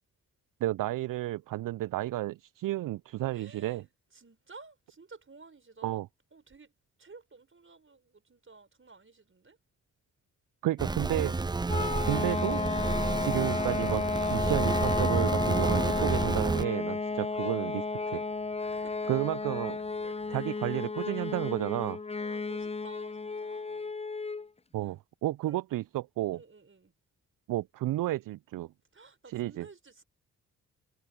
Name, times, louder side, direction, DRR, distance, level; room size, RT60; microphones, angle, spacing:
voice 1, 0.6-3.8 5.8-6.1 10.6-11.4 12.1-12.6 13.2-18.2 19.1-19.8 20.3-22.0 24.7-26.4 27.5-28.7 29.3-29.7, right 15 dB, 60° right, 0.6 m, -32 dB
voice 2, 3.3-6.0 6.3-6.7 7.0-9.6 17.1-17.4 18.6-19.3 19.8-20.5 22.2-23.9 24.8-25.0 25.5-25.6 26.3-26.9 28.9-30.0, right 4 dB, 35° right, 6.1 m, -54 dB
sound 1, 10.8-16.7, right 3 dB, 10° right, 0.5 m, -30 dB
sound 2, 11.6-20.5, right 16 dB, 75° right, 1.5 m, -59 dB
sound 3, 11.7-24.5, left 3 dB, 15° left, 0.9 m, -32 dB
hypercardioid pair, 45°, 37 cm